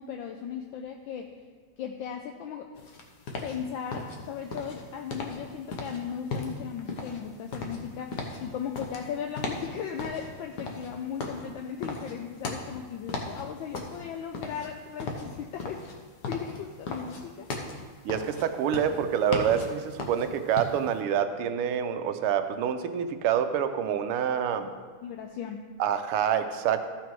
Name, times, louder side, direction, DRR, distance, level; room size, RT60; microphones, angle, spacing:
voice 1, 0.0-1.3 1.8-2.7 3.4-15.8 16.3-17.8 25.0-25.6, left 8 dB, 75° left, 4 dB, 1.2 m, -37 dB
sound 1, 2.8-21.0, left 3 dB, 55° left, 1.4 m, -37 dB
voice 2, 18.1-24.7 25.8-26.9, right 8 dB, 85° right, 8 dB, 1.6 m, -27 dB
14.0 x 5.9 x 4.7 m, 1.5 s
omnidirectional pair, 2.4 m